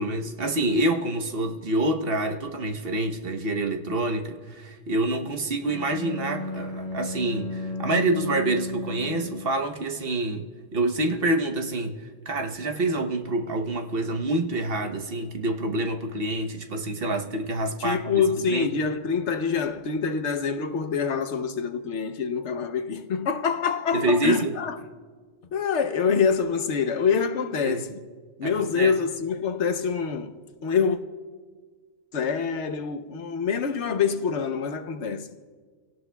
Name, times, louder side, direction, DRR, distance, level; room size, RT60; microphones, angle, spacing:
voice 1, 0.0-18.0 18.5-18.7 23.9-24.5 27.6-27.9 28.4-28.9, right 2 dB, 60° right, 1.1 m, -27 dB
Bowed string instrument, 5.6-9.7, left 2 dB, 55° left, 1.8 m, -34 dB
voice 2, 17.8-24.8 25.5-28.0 28.4-30.3 30.6-31.0 32.1-35.3, left 6 dB, 80° left, 1.1 m, -26 dB
29.0 x 17.5 x 2.3 m
omnidirectional pair, 1.1 m